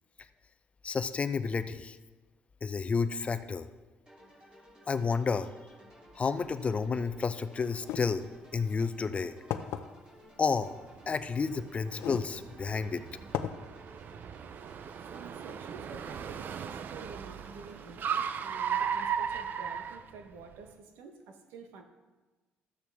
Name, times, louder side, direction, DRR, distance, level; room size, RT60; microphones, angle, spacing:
voice 1, 0.8-2.0 2.6-3.7 4.9-5.5 6.2-8.3 8.5-9.3 10.4-10.8 11.1-13.0, left 5 dB, 30° left, 11 dB, 0.5 m, -30 dB
sound 1, 4.1-18.8, equal, 20° right, 3.2 m, -57 dB
sound 2, 7.8-8.0 8.8-8.9 9.5-9.8 11.1-11.2 11.9-12.3 12.7-12.8 13.3-13.5, left 10 dB, 80° left, 0.6 m, -34 dB
Car, 10.8-20.6, right 7 dB, 55° right, 0.5 m, -37 dB
voice 2, 15.1-21.8, right 4 dB, 90° right, 5 dB, 1.1 m, -49 dB
12.5 x 8.3 x 3.5 m, 1.2 s
cardioid pair, 95°, 4 cm